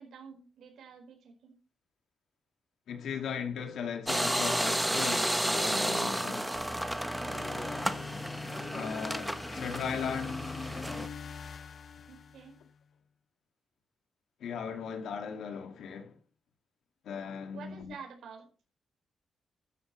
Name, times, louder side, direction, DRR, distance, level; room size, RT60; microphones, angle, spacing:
voice 1, 0.0-1.5 7.2-7.7 12.1-12.6 17.5-18.5, right 6 dB, 85° right, 4.8 m, -49 dB
voice 2, 2.9-6.5 8.7-10.5 14.4-16.2 17.0-17.9, left 7 dB, 85° left, 2.3 m, -37 dB
sound 1, 4.1-11.1, right 1 dB, 5° right, 0.9 m, -32 dB
sound 2, 6.5-12.7, left 5 dB, 55° left, 1.4 m, -42 dB
13.0 x 12.5 x 3.2 m
cardioid pair, 100°, 0 cm